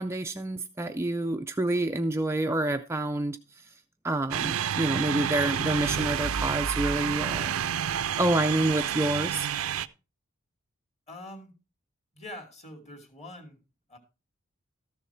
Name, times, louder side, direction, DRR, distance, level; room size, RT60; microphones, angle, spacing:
voice 1, 0.0-3.4 4.0-7.6 8.2-9.5, right 1 dB, 10° right, 0.4 m, -28 dB
sound 1, 4.3-9.9, right 8 dB, 75° right, 0.5 m, -29 dB
voice 2, 11.1-11.5 12.1-13.6 13.9-14.0, left 1 dB, 30° left, 2.6 m, -44 dB
13.5 x 7.1 x 4.5 m
head